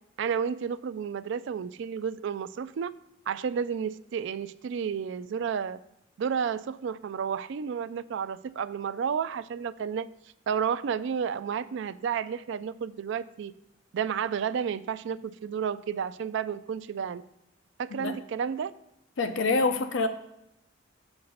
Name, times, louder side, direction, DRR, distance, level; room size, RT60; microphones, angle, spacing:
voice 1, 0.2-2.9 3.3-5.8 6.2-10.1 10.5-13.5 13.9-17.2 17.8-18.7, right 7 dB, 70° right, 15 dB, 0.3 m, -31 dB
voice 2, 19.2-20.1, left 3 dB, 70° left, 9 dB, 0.5 m, -26 dB
7.1 x 3.8 x 6.5 m, 0.86 s
head